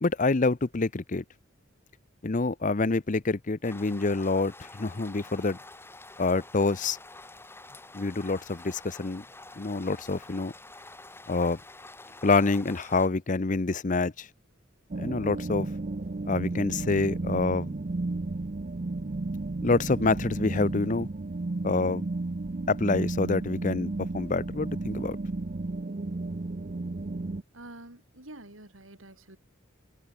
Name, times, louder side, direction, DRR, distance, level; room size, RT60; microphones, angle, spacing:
voice 1, 0.0-1.2 2.2-5.6 6.2-7.0 7.9-9.2 9.6-10.5 11.3-11.6 12.2-14.3 15.0-15.7 16.3-17.7 19.6-21.1 21.6-22.0 22.7-25.2, left 3 dB, 40° left, 0.7 m, -27 dB
sound 1, 3.6-13.1, left 2 dB, 10° left, 4.2 m, -48 dB
sound 2, 14.9-27.4, right 2 dB, 40° right, 0.6 m, -33 dB
voice 2, 27.5-29.4, right 1 dB, 85° right, 7.5 m, -47 dB
head